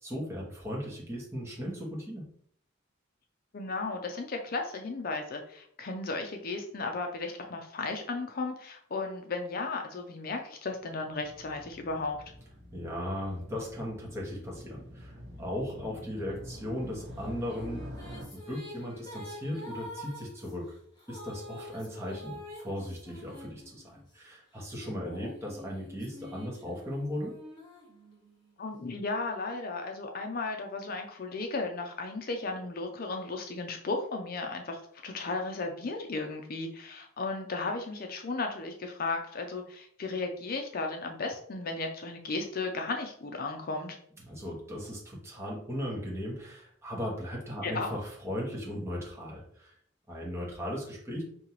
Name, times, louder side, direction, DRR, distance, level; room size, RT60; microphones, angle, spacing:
voice 1, 0.0-2.3 12.7-17.9 18.3-20.7 21.1-27.3 44.2-49.8 50.1-51.2, equal, 15° right, -4 dB, 1.3 m, -37 dB
voice 2, 3.5-12.2 25.0-25.3 28.6-44.0 47.6-47.9, left 3 dB, 50° left, 4 dB, 0.5 m, -35 dB
Motorcycle, 10.8-18.3, equal, 60° right, 1.1 m, -46 dB
sound 1, 17.2-24.2 24.8-28.5, left 1 dB, 20° left, 1.4 m, -47 dB
5.4 x 2.8 x 3.0 m, 0.62 s
head